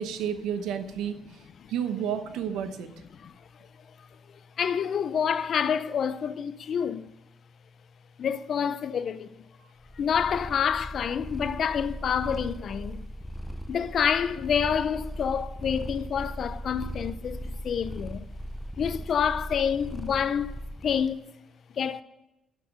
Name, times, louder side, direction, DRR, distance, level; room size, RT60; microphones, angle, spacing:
voice 1, 0.0-1.4 1.7-2.9, right 8 dB, 90° right, 1.0 m, -31 dB
voice 2, 4.6-7.0 8.2-9.4 10.0-13.0 13.7-18.3 18.8-21.3 21.7-22.0, left 7 dB, 60° left, 0.6 m, -28 dB
Purr, 9.8-21.1, equal, ahead, 0.7 m, -38 dB
11.5 x 6.9 x 6.2 m
cardioid pair, 90°, 0 cm